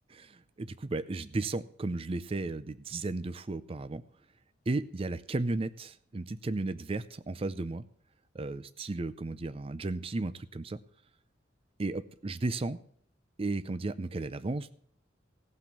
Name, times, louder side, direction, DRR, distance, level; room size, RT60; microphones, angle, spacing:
voice 1, 0.2-4.0 4.7-7.8 8.3-10.8 11.8-12.8 13.4-14.7, right 2 dB, 30° right, 13 dB, 0.5 m, -34 dB
17.5 x 6.0 x 6.7 m, 0.64 s
head